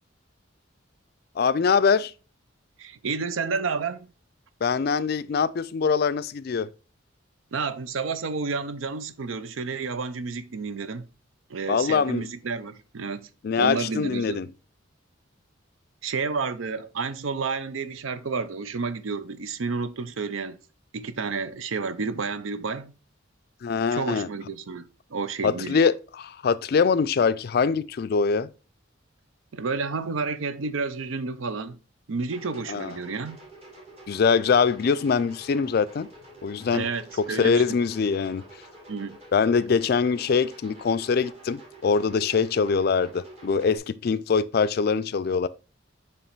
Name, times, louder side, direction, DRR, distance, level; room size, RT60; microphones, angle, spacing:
voice 1, 1.4-2.1 4.6-6.7 11.7-12.2 13.4-14.5 23.6-24.3 25.4-28.5 32.7-32.9 34.1-36.1 36.4-36.9 37.2-38.4 39.3-45.5, left 5 dB, 50° left, 0.3 m, -23 dB
voice 2, 2.8-4.1 7.5-11.1 11.5-13.3 13.6-14.4 16.0-20.6 20.9-22.9 23.9-25.8 29.5-31.8 32.1-33.4 36.7-37.8 38.9-39.2, right 4 dB, 85° right, 0.6 m, -30 dB
sound 1, 32.3-43.8, right 1 dB, 30° right, 1.8 m, -48 dB
7.2 x 3.0 x 4.4 m
head